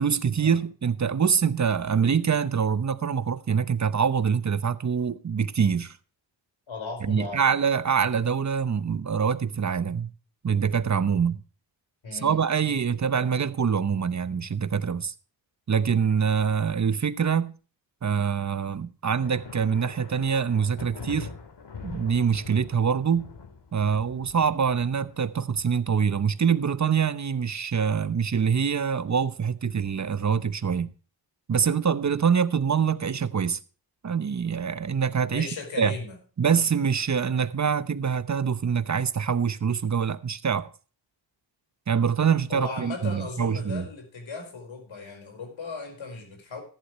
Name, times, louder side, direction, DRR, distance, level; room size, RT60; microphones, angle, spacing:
voice 1, 0.0-6.0 7.0-10.1 10.4-11.4 12.1-15.1 15.7-17.5 18.0-21.3 21.8-23.3 23.7-30.9 31.5-33.6 34.0-35.5 35.8-36.0 36.4-40.7 41.9-43.9, right 6 dB, 40° right, 0.9 m, -25 dB
voice 2, 6.7-7.4 12.0-12.4 35.3-36.2 42.5-46.6, left 4 dB, 85° left, 5.0 m, -37 dB
sound 1, 19.2-26.6, left 5 dB, 65° left, 2.2 m, -43 dB
14.5 x 11.5 x 3.1 m
cardioid pair, 85°, 45 cm